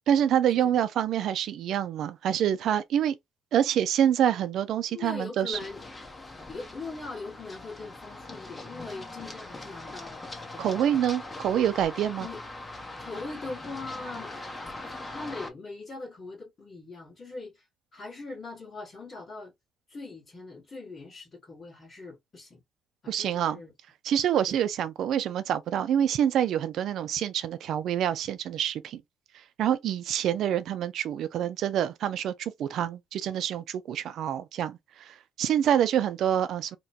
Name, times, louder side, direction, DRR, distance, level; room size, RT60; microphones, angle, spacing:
voice 1, 0.1-3.1 3.5-5.6 10.6-12.3 23.1-23.6 24.0-29.0 29.6-36.8, right 10 dB, 75° right, 0.5 m, -26 dB
voice 2, 4.9-5.8 6.5-10.8 12.2-12.7 13.0-14.5 15.1-17.7 17.9-19.5 19.9-22.6 23.0-23.7 24.5-24.6, left 3 dB, 40° left, 1.5 m, -41 dB
Run, 5.5-15.5, left 2 dB, 20° left, 1.0 m, -41 dB
3.0 x 2.2 x 4.2 m
cardioid pair, 90°, 0 cm